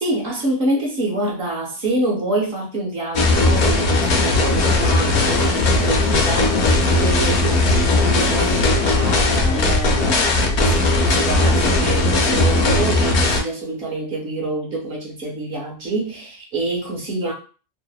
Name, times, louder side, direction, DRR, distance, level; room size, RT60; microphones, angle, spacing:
voice 1, 0.0-17.3, right 1 dB, 55° right, -2 dB, 0.8 m, -26 dB
sound 1, 3.2-13.4, left 2 dB, 65° left, 0.7 m, -17 dB
2.7 x 2.0 x 2.3 m, 0.37 s
omnidirectional pair, 1.4 m